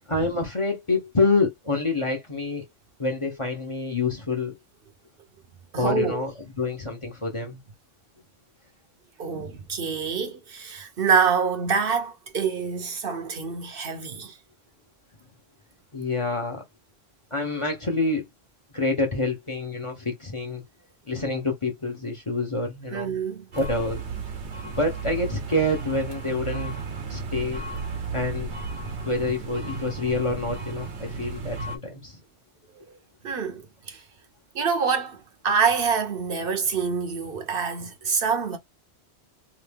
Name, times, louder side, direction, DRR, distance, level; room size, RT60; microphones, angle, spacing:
voice 1, 0.1-2.6 3.0-4.5 5.8-7.6 15.9-16.6 17.3-18.2 18.7-20.6 21.1-23.1 23.6-24.0 24.7-26.7 27.1-27.6 28.1-28.5 29.0-32.2, left 2 dB, 30° left, 0.8 m, -27 dB
voice 2, 5.7-6.3 9.2-14.4 22.9-23.5 33.2-34.0 34.5-38.6, right 6 dB, 60° right, 0.9 m, -26 dB
sound 1, 23.5-31.8, right 4 dB, 85° right, 1.2 m, -34 dB
2.8 x 2.6 x 3.4 m
omnidirectional pair, 1.1 m